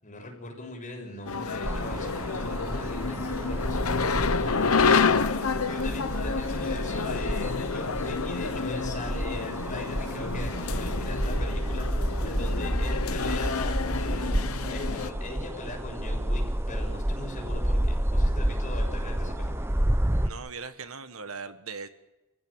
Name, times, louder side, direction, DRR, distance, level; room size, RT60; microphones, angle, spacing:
voice 1, 0.0-5.0 5.4-19.5, left 2 dB, 35° left, 1 dB, 7.1 m, -40 dB
sound 1, 1.3-15.1, left 5 dB, 75° left, 1.0 m, -29 dB
sound 2, 1.6-20.3, right 1 dB, 10° right, 0.9 m, -30 dB
voice 2, 20.2-21.9, right 5 dB, 70° right, 10 dB, 1.6 m, -39 dB
28.5 x 15.5 x 8.8 m, 1.1 s
head